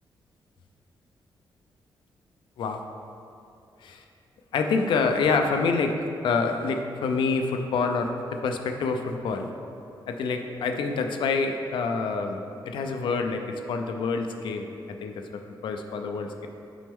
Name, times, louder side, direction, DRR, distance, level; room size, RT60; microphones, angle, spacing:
voice 1, 4.5-6.0 6.2-9.5 10.1-12.4 12.6-16.5, left 4 dB, 75° left, 5 dB, 0.4 m, -27 dB
6.1 x 4.3 x 3.5 m, 2.6 s
wide cardioid pair, 160°, 8 cm